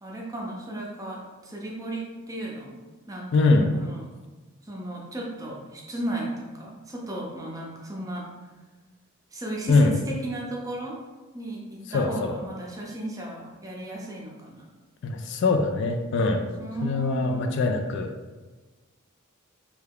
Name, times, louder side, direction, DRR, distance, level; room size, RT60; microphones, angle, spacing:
voice 1, 0.0-2.8 3.1-4.1 4.6-8.3 9.3-11.0 11.3-14.6 16.6-17.6, right 1 dB, 15° right, -2 dB, 0.5 m, -35 dB
voice 2, 3.3-3.7 9.7-9.9 11.9-12.3 15.0-16.5 16.8-18.1, left 3 dB, 55° left, 5 dB, 0.3 m, -22 dB
3.3 x 2.3 x 3.4 m, 1.2 s
head